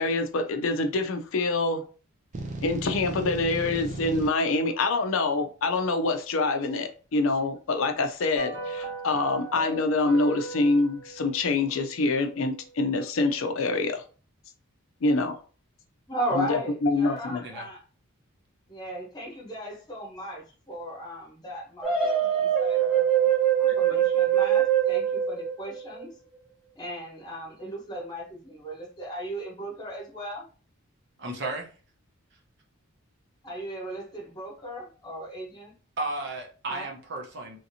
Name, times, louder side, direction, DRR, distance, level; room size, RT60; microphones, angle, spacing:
voice 1, 0.0-1.8 2.6-14.0 15.0-15.4 16.3-17.4 23.7-24.0, left 3 dB, 65° left, 0.5 m, -26 dB
sound 1, 2.3-4.3, right 2 dB, 35° right, 0.5 m, -35 dB
sound 2, 8.3-12.7 12.9-13.0, right 3 dB, 80° right, 1.3 m, -39 dB
voice 2, 16.1-17.8 18.7-23.0 23.6-26.1 26.8-30.5 33.4-35.7 36.7-36.9, right 1 dB, 20° left, 1.1 m, -36 dB
sound 3, 21.8-26.0, right 10 dB, ahead, 0.7 m, -23 dB
voice 3, 31.2-31.7 36.0-37.6, right 2 dB, 50° right, 0.8 m, -33 dB
3.1 x 2.8 x 2.7 m
head